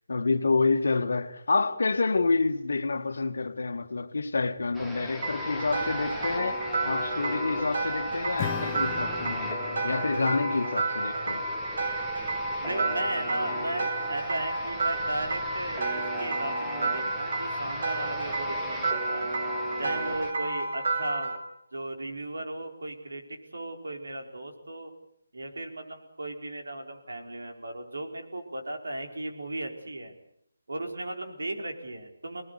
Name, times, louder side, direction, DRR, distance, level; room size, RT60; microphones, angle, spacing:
voice 1, 0.1-11.5, left 3 dB, 70° left, 1.9 m, -28 dB
sound 1, 4.7-20.3, equal, 5° right, 2.0 m, -39 dB
sound 2, 5.2-21.4, right 2 dB, 60° right, 6.3 m, -31 dB
Acoustic guitar / Strum, 8.4-13.2, left 10 dB, 20° left, 1.2 m, -41 dB
voice 2, 12.6-19.3 19.8-21.3 21.7-24.9 25.3-30.2 30.7-32.4, right 1 dB, 80° right, 4.7 m, -36 dB
25.5 x 19.5 x 8.3 m
figure-of-eight pair, 160°, 0 cm